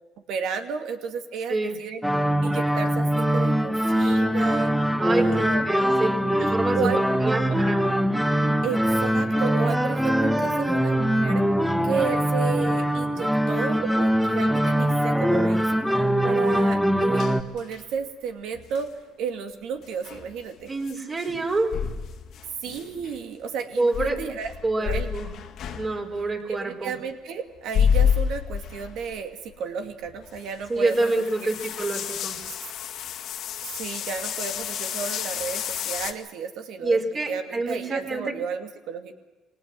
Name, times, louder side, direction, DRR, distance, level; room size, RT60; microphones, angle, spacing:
voice 1, 0.3-2.0 2.4-4.7 5.2-5.6 6.4-7.0 7.4-7.6 8.6-11.4 11.8-15.8 16.2-17.3 17.5-18.9 19.2-20.7 22.6-25.1 26.5-31.5 33.6-37.0 37.3-39.1, right 6 dB, 75° right, 6 dB, 2.5 m, -33 dB
sound 1, 2.0-17.4, equal, ahead, 1.6 m, -22 dB
voice 2, 5.0-6.1 6.3-6.9 7.2-7.8 10.4-10.5 20.7-21.7 23.8-24.2 24.6-25.3 25.7-27.0 30.7-32.4 36.8-38.3, right 2 dB, 30° right, 2 dB, 4.9 m, -26 dB
sound 2, 17.2-18.1 18.5-18.8 19.8-23.2 23.9-26.3 27.6-29.2 29.5-29.6 30.0-36.1, left 8 dB, 70° left, 2.0 m, -30 dB
23.5 x 19.0 x 7.7 m, 1.2 s
supercardioid pair, 85°, 0 cm